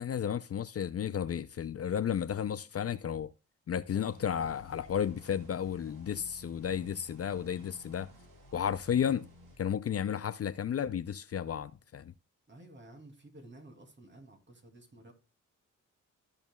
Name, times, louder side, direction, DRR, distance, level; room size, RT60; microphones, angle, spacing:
voice 1, 0.0-3.3 3.7-8.1 8.5-9.3 9.6-12.1, left 8 dB, 50° left, 0.6 m, -33 dB
sound 1, 4.0-9.6, left 1 dB, 75° right, 3.0 m, -55 dB
voice 2, 12.5-15.1, right 1 dB, 35° right, 2.7 m, -53 dB
14.5 x 5.2 x 2.3 m
cardioid pair, 65°, 32 cm